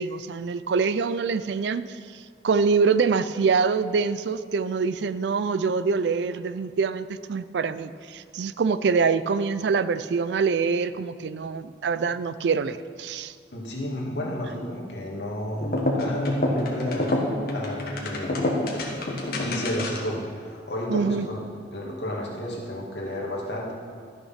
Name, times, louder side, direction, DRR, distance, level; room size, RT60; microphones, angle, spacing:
voice 1, 0.0-1.8 2.4-13.3 20.9-21.3, right 5 dB, 75° right, 14 dB, 0.4 m, -25 dB
voice 2, 13.5-17.2 17.5-18.4 19.4-21.4 21.7-23.7, left 1 dB, 80° left, -3 dB, 2.2 m, -32 dB
sound 1, 15.5-20.2, left 1 dB, 55° left, 1.6 m, -27 dB
12.5 x 6.6 x 5.7 m, 2.1 s
head